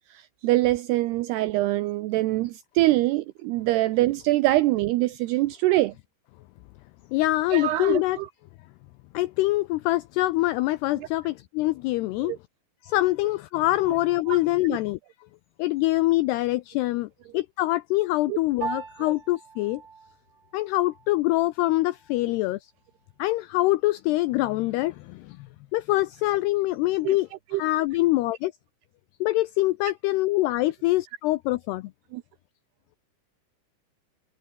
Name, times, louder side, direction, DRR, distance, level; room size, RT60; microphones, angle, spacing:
voice 1, 0.1-5.9 7.5-8.3 11.0-11.1 12.3-12.4 14.3-14.4 14.7-14.8 18.3-18.4 27.0-27.2 27.5-27.6 32.1-32.2, right 17 dB, 80° right, 2.3 m, -24 dB
voice 2, 7.1-8.2 9.1-12.4 12.8-15.0 15.6-19.8 20.5-22.6 23.2-25.4 25.7-28.5 29.2-31.9, left 18 dB, 90° left, 2.3 m, -24 dB
Piano, 18.6-28.2, right 6 dB, 60° right, 6.9 m, -43 dB
omnidirectional pair, 5.5 m